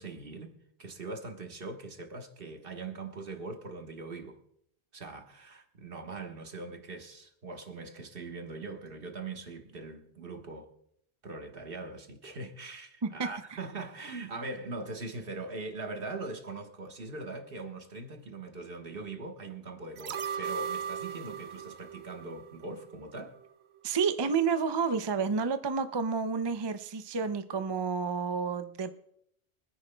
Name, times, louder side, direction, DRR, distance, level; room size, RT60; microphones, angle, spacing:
voice 1, 0.0-4.4 4.9-10.7 11.2-23.4, right 3 dB, 60° right, 1.4 m, -41 dB
sound 1, 20.0-23.1 23.4-23.5, right 7 dB, 75° right, 0.9 m, -38 dB
voice 2, 23.8-29.0, right 5 dB, 35° right, 0.4 m, -30 dB
24.5 x 9.9 x 2.2 m
omnidirectional pair, 1.1 m